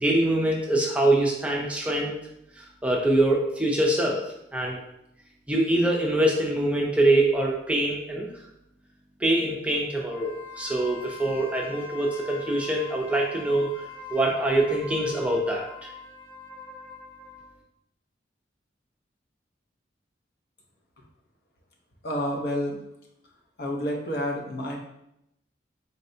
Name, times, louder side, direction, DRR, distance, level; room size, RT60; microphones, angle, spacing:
voice 1, 0.0-2.1 2.8-4.2 4.5-4.8 5.5-8.3 9.2-13.7 14.1-15.7, right 1 dB, 5° right, -2 dB, 0.5 m, -24 dB
Wind instrument woodwind instrument, 10.1-17.5, left 5 dB, 25° left, 0.8 m, -43 dB
voice 2, 22.0-22.8 23.6-24.8, equal, 60° left, -1 dB, 0.8 m, -29 dB
4.1 x 3.2 x 2.7 m, 0.80 s
head